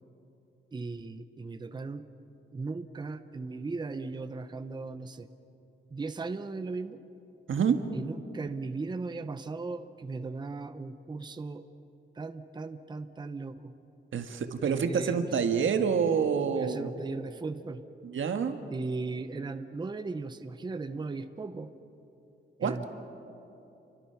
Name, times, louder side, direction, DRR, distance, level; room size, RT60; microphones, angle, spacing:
voice 1, 0.7-2.0 2.5-5.3 5.9-7.0 7.9-11.7 12.1-13.7 14.6-15.4 16.5-17.8 18.7-21.7 22.6-22.9, right 3 dB, 20° right, 10 dB, 0.7 m, -37 dB
voice 2, 7.5-7.8 14.1-16.9 18.0-18.6 22.6-22.9, right 6 dB, 90° right, 7 dB, 1.6 m, -27 dB
29.0 x 24.0 x 5.8 m, 2.9 s
wide cardioid pair, 165°, 20 cm